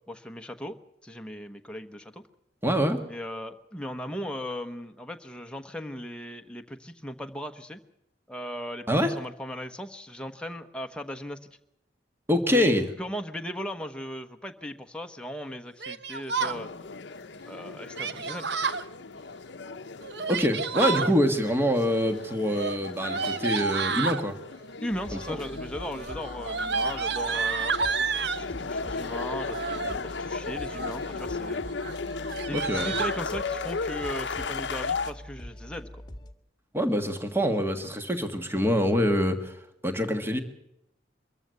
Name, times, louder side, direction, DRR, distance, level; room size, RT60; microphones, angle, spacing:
voice 1, 0.1-0.8 1.0-2.2 3.1-7.8 8.3-8.9 9.2-11.4 12.5-16.7 17.5-18.6 24.8-27.7 28.3-31.6 32.5-36.0, equal, 5° left, 5 dB, 1.1 m, -37 dB
voice 2, 2.6-3.0 8.9-9.2 12.3-12.9 20.3-24.4 25.3-25.4 32.5-32.9 36.7-40.4, equal, 15° right, 7 dB, 1.6 m, -25 dB
Yell, 15.8-16.6 17.9-18.8 20.0-21.1 22.4-24.2 25.1-25.5 25.8-28.4 29.4-30.0 30.5-31.0 31.4-31.6 31.8-31.9 32.2-33.2, right 5 dB, 65° right, 1.0 m, -30 dB
sound 1, 16.4-35.1, left 4 dB, 70° left, 0.8 m, -36 dB
sound 2, 24.9-36.3, left 1 dB, 25° left, 1.6 m, -44 dB
23.5 x 14.5 x 8.2 m, 0.83 s
head